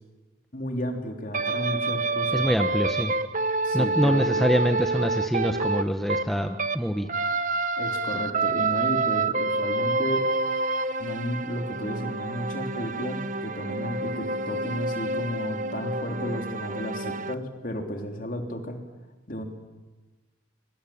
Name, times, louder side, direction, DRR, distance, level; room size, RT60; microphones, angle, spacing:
voice 1, 0.5-2.5 3.6-4.5 7.8-10.3 11.0-18.8 19.3-19.4, equal, 45° left, 3 dB, 3.6 m, -33 dB
sound 1, 1.3-6.8 7.1-17.3, right 3 dB, 40° right, 1.0 m, -28 dB
voice 2, 2.3-3.2 3.7-7.1, equal, ahead, 5 dB, 1.0 m, -25 dB
25.5 x 24.0 x 8.7 m, 1.2 s
head